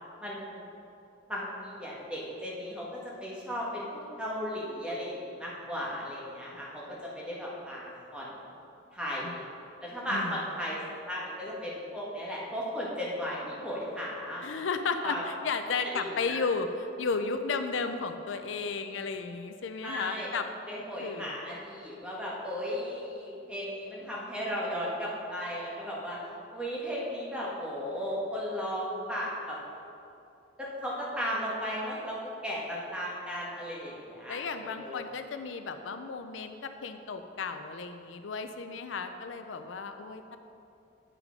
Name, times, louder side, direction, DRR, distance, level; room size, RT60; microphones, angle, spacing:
voice 1, 0.2-0.7 1.3-8.3 8.9-9.4 9.8-14.4 15.0-15.2 15.9-16.4 19.8-20.3 20.7-26.2 26.5-29.6 30.6-35.0, equal, 5° right, -5 dB, 1.6 m, -35 dB
voice 2, 10.1-10.4 14.4-20.5 21.0-21.3 34.3-40.4, left 4 dB, 80° left, 8 dB, 0.5 m, -34 dB
9.2 x 6.1 x 5.1 m, 2.7 s
head